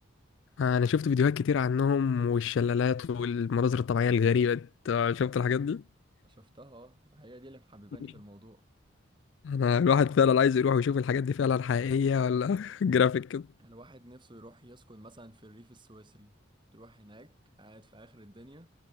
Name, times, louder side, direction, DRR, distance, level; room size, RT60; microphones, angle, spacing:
voice 1, 0.6-5.8 9.4-13.5, left 6 dB, 60° left, 0.3 m, -26 dB
voice 2, 6.2-8.6 13.6-16.4 16.7-18.7, right 1 dB, 25° right, 3.7 m, -52 dB
head